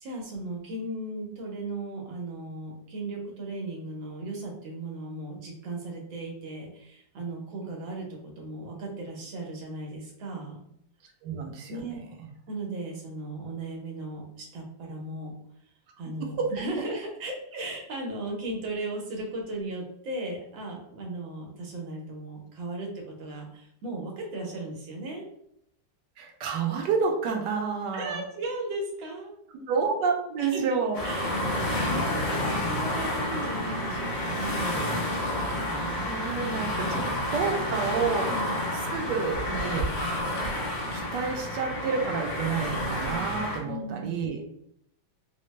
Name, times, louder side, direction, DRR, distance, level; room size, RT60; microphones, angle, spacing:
voice 1, 0.0-10.6 11.7-12.0 12.5-15.3 16.0-25.3 27.9-29.7 30.4-31.4 31.9-34.9 36.4-36.6 38.3-38.6 43.6-44.2, right 2 dB, 90° right, 0 dB, 1.6 m, -36 dB
voice 2, 11.2-12.0 16.2-16.5 26.2-28.2 29.7-31.0 35.7-37.0 37.3-38.3 38.9-39.9 40.9-44.4, right 5 dB, 75° right, 2 dB, 1.2 m, -29 dB
sound 1, 30.9-43.6, left 1 dB, 80° left, 1.8 m, -30 dB
4.1 x 2.1 x 3.2 m, 0.73 s
omnidirectional pair, 2.0 m